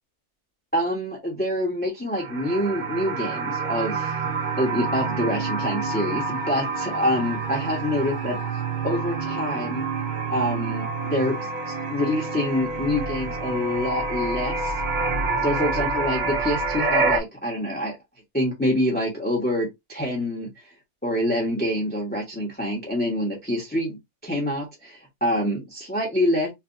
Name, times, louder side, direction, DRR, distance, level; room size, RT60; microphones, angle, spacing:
voice 1, 0.7-4.1 4.6-8.4 8.8-9.9 10.3-11.3 11.7-14.7 15.4-17.9 18.3-20.5 21.0-24.0 24.2-26.5, left 1 dB, 10° left, 0.7 m, -26 dB
sound 1, 2.1-17.2, right 3 dB, 75° right, 0.4 m, -27 dB
3.3 x 2.2 x 2.5 m
omnidirectional pair, 1.6 m